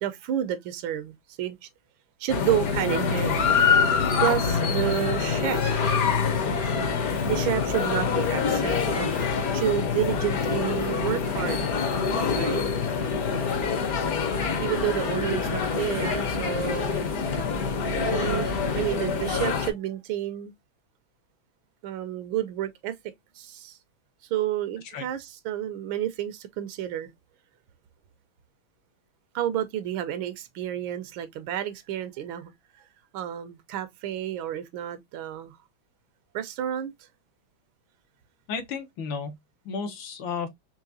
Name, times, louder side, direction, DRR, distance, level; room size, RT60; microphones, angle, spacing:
voice 1, 0.0-1.6 2.2-3.5 4.2-5.6 7.2-11.6 12.3-12.6 14.6-17.0 18.0-20.5 21.8-22.9 23.4-23.8 24.3-27.1 29.3-32.8 33.1-35.6 36.3-36.9, right 11 dB, 80° right, 1.4 m, -30 dB
sound 1, 2.3-19.7, left 5 dB, 55° left, 1.2 m, -25 dB
voice 2, 38.5-39.3 39.6-40.5, left 5 dB, 75° left, 1.6 m, -33 dB
4.7 x 3.2 x 2.5 m
omnidirectional pair, 2.2 m